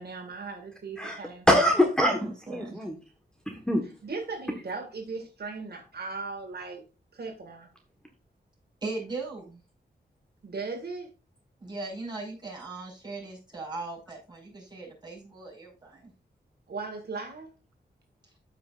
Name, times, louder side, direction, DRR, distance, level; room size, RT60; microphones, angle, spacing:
voice 1, 0.0-1.4 4.0-6.8 7.1-7.7 10.4-11.1 16.7-17.5, right 4 dB, 65° right, 3 dB, 1.8 m, -37 dB
voice 2, 1.5-2.9 3.5-3.8, equal, 5° left, 1 dB, 1.3 m, -24 dB
voice 3, 2.2-2.8 8.8-9.6 11.6-16.1, right 3 dB, 25° right, -3 dB, 4.9 m, -38 dB
13.5 x 5.4 x 2.4 m, 0.32 s
wide cardioid pair, 150°, 18 cm